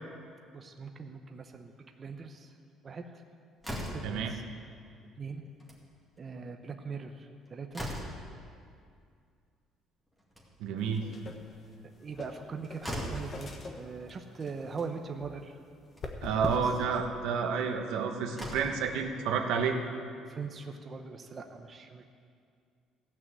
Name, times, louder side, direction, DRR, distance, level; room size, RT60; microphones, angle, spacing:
voice 1, 0.5-2.6 2.8-3.3 3.9-4.4 5.2-5.4 6.2-7.9 11.0-15.6 16.3-16.8 20.3-22.0, right 5 dB, 30° right, 5 dB, 0.7 m, -41 dB
Slam, 3.6-4.2 5.5-5.8 6.2-6.3 6.5-6.6 7.2-8.3 10.1-10.8 12.4-12.5 12.8-13.3 14.4-14.5 14.9-15.0 15.8-16.1 17.8-17.9 18.3-18.9, equal, 5° left, 2.2 m, -39 dB
voice 2, 4.0-4.3 10.6-11.1 16.2-19.8, right 6 dB, 80° right, 4 dB, 1.2 m, -30 dB
sound 1, 10.8-16.9, left 3 dB, 35° left, 1.1 m, -44 dB
15.5 x 6.0 x 8.1 m, 2.3 s
cardioid pair, 135°, 0 cm